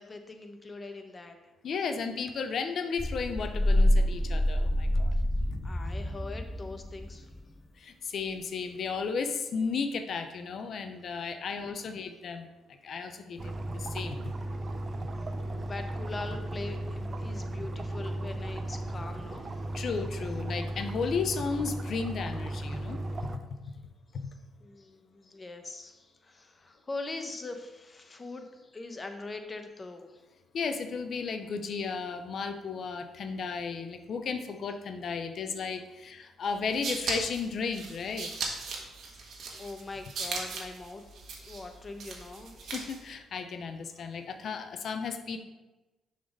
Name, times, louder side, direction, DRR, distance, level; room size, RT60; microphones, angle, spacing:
voice 1, 0.0-1.4 5.6-7.3 15.2-19.5 24.6-30.2 39.1-42.5, left 3 dB, 30° left, 6 dB, 0.9 m, -42 dB
voice 2, 1.6-5.1 7.8-12.5 12.8-14.3 19.7-23.0 23.3-23.4 24.1-24.3 30.5-38.3 42.6-45.4, left 5 dB, 60° left, 8 dB, 0.6 m, -34 dB
sound 1, 3.0-7.4, left 1 dB, 10° left, 0.4 m, -27 dB
sound 2, 13.4-23.4, right 1 dB, 35° right, 0.6 m, -35 dB
sound 3, 36.5-43.1, right 4 dB, 65° right, 1.3 m, -38 dB
6.5 x 4.0 x 5.3 m, 1.1 s
cardioid pair, 90°, 0 cm